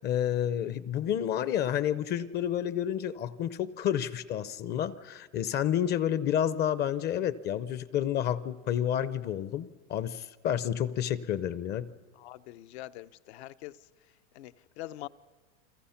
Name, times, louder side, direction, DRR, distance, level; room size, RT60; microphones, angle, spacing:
voice 1, 0.0-11.9, left 10 dB, 30° left, 0.7 m, -30 dB
voice 2, 12.2-13.7 14.3-15.1, left 15 dB, 65° left, 0.8 m, -44 dB
29.5 x 23.0 x 5.8 m
supercardioid pair, 135°, 35 cm